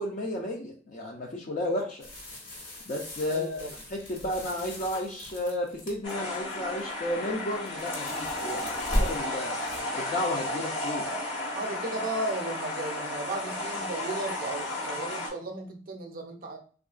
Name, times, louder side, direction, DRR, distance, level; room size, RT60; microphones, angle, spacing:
voice 1, 0.0-2.1 2.9-3.6 3.9-9.6 9.9-11.1, left 1 dB, 40° left, 0.5 m, -32 dB
sound 1, 2.0-6.4 6.8-7.1 7.4-9.8, equal, 60° left, 1.4 m, -36 dB
voice 2, 3.3-3.7 11.5-16.6, right 2 dB, 45° right, 0.5 m, -35 dB
sound 2, 6.0-15.3, left 1 dB, 75° left, 1.3 m, -33 dB
3.5 x 2.3 x 2.4 m
head